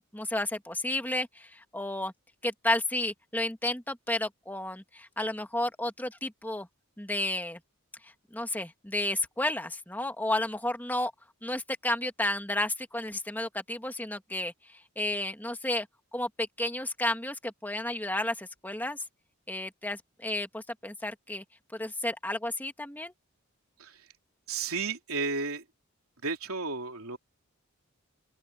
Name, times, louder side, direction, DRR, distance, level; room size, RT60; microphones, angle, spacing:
voice 1, 0.0-2.1 2.4-6.7 7.0-7.6 8.0-11.1 11.4-14.5 15.0-15.9 16.1-19.0 19.5-21.4 21.7-23.1, left 1 dB, 10° left, 1.9 m, -32 dB
voice 2, 24.5-25.6 26.2-27.2, right 4 dB, 80° right, 3.2 m, -33 dB
open air
head